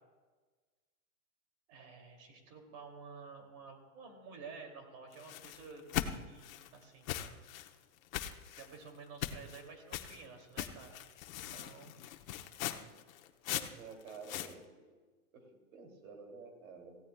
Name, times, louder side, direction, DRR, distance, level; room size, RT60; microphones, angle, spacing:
voice 1, 1.7-7.1 8.6-11.9, right 4 dB, 45° right, 3 dB, 2.7 m, -52 dB
sound 1, 5.1-6.7 7.1-7.7 8.1-8.7 9.2-9.6 9.9-10.2 10.6-14.5, left 12 dB, 65° left, 1.0 m, -40 dB
voice 2, 13.5-14.9 15.3-15.4 15.7-17.0, right 4 dB, 70° right, 3 dB, 2.8 m, -50 dB
18.0 x 15.5 x 2.3 m, 1.4 s
supercardioid pair, 155°, 44 cm